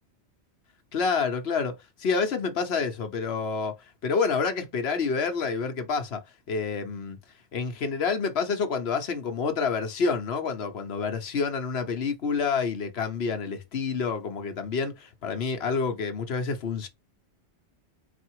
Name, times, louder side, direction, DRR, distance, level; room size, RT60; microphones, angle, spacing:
voice 1, 0.9-1.7 2.0-3.8 4.0-6.2 6.5-7.2 7.5-16.9, left 5 dB, 65° left, 1.1 m, -28 dB
4.3 x 2.4 x 4.5 m
omnidirectional pair, 1.2 m